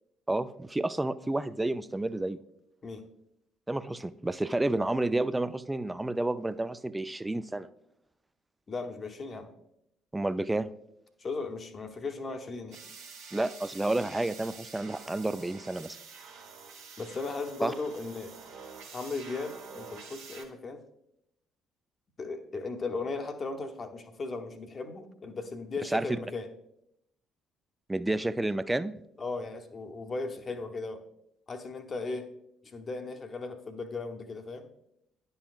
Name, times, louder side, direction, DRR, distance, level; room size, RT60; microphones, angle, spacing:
voice 1, 0.3-2.4 3.7-7.7 10.1-10.7 13.3-16.0 17.6-17.7 25.9-26.2 27.9-28.9, right 2 dB, 15° right, 15 dB, 0.4 m, -30 dB
voice 2, 8.7-9.5 11.2-12.8 17.0-18.3 18.9-20.8 22.2-26.5 29.2-31.0 31.5-32.3 32.6-34.7, left 3 dB, 40° left, 6 dB, 0.8 m, -37 dB
sound 1, 12.7-20.4, right 5 dB, 70° right, 1.2 m, -48 dB
10.5 x 5.5 x 2.4 m, 0.78 s
figure-of-eight pair, 50°, 0 cm